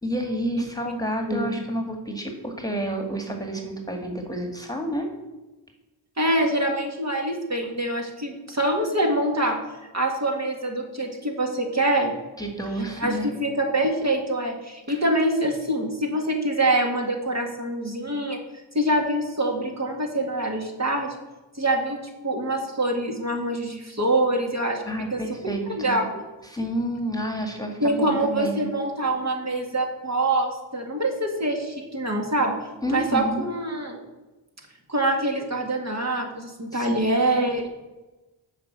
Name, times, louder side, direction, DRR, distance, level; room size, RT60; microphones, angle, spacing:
voice 1, 0.0-5.1 12.4-13.3 14.9-15.0 24.8-26.0 26.4-28.7 32.8-33.4 36.7-37.0, equal, 10° left, 3 dB, 1.8 m, -29 dB
voice 2, 1.3-1.6 6.2-9.6 9.9-12.1 13.0-18.4 18.7-21.1 21.6-22.0 22.2-24.8 25.1-26.1 27.8-32.6 32.9-34.0 34.9-37.7, right 1 dB, 35° right, 1 dB, 2.0 m, -25 dB
7.7 x 5.2 x 7.5 m, 1.1 s
cardioid pair, 45°, 47 cm